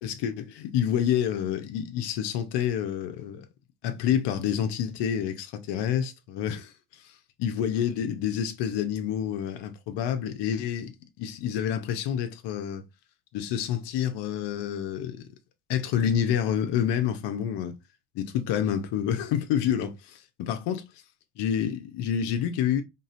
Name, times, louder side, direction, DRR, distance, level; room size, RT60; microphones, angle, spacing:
voice 1, 0.0-3.5 3.8-7.1 7.4-10.9 11.2-12.8 13.3-15.3 15.7-17.7 18.2-20.8 21.4-22.8, left 9 dB, 55° left, 0.9 m, -28 dB
4.0 x 3.7 x 2.5 m
hypercardioid pair, 85°, 48 cm